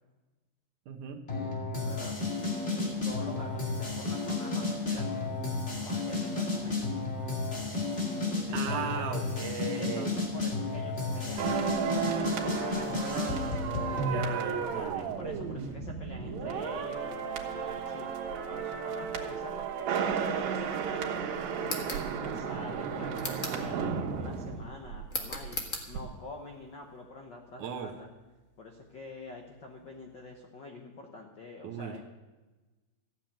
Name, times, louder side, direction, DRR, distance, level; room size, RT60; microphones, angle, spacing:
voice 1, 0.9-1.2 8.5-10.2 12.9-15.1 27.6-27.9 31.6-31.9, right 7 dB, 70° right, 4 dB, 2.3 m, -37 dB
sound 1, 1.3-14.2, left 3 dB, 25° left, 1.8 m, -32 dB
voice 2, 1.8-2.1 2.6-5.3 5.8-6.9 8.5-9.2 9.8-11.7 12.1-13.1 13.9-18.1 18.5-21.8 22.2-25.6 25.9-28.1 28.6-32.1, left 2 dB, 70° left, 1 dB, 1.0 m, -46 dB
adjusting the spped of a record, 11.4-25.5 25.8-26.0, right 7 dB, 90° right, 3.1 m, -34 dB
sound 2, 21.6-22.1 23.1-23.6 25.1-25.9, left 2 dB, 45° left, 1.0 m, -36 dB
15.0 x 7.7 x 9.0 m, 1.2 s
omnidirectional pair, 4.0 m